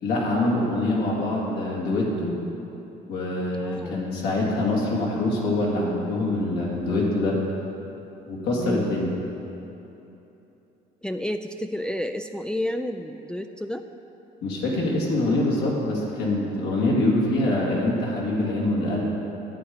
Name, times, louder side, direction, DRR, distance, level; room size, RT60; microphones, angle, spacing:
voice 1, 0.0-2.3 3.1-7.4 8.3-9.1 14.4-19.0, left 2 dB, 75° left, -3 dB, 2.2 m, -24 dB
voice 2, 3.6-4.0 8.6-9.0 11.0-13.8, left 1 dB, 5° left, 6 dB, 0.3 m, -30 dB
11.0 x 8.0 x 5.0 m, 3.0 s
cardioid pair, 110°, 17 cm